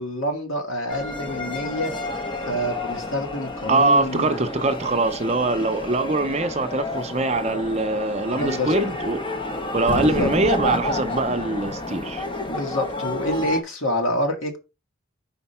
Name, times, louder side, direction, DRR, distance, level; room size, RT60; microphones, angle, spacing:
voice 1, 0.0-1.9 2.5-4.4 8.3-8.9 10.0-10.3 12.5-14.6, equal, 65° left, 1.9 m, -27 dB
sound 1, 0.9-13.6, left 2 dB, 25° left, 1.0 m, -30 dB
voice 2, 3.7-9.2 9.7-12.2, right 2 dB, 30° right, 0.7 m, -23 dB
5.2 x 4.6 x 5.5 m
head